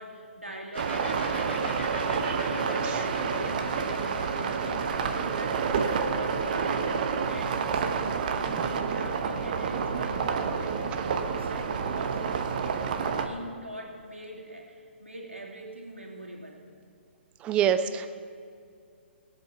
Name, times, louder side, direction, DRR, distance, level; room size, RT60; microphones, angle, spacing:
voice 1, 0.0-4.1 4.4-6.9 7.3-12.3 13.1-16.7, right 1 dB, 85° right, -2 dB, 2.8 m, -43 dB
sound 1, 0.7-8.2, left 1 dB, 70° left, 3.2 m, -43 dB
sound 2, 0.8-13.3, right 5 dB, 45° right, 1.0 m, -29 dB
voice 2, 17.4-18.1, right 9 dB, 15° right, 10 dB, 0.6 m, -25 dB
20.0 x 8.1 x 5.9 m, 2.3 s
figure-of-eight pair, 125°, 6 cm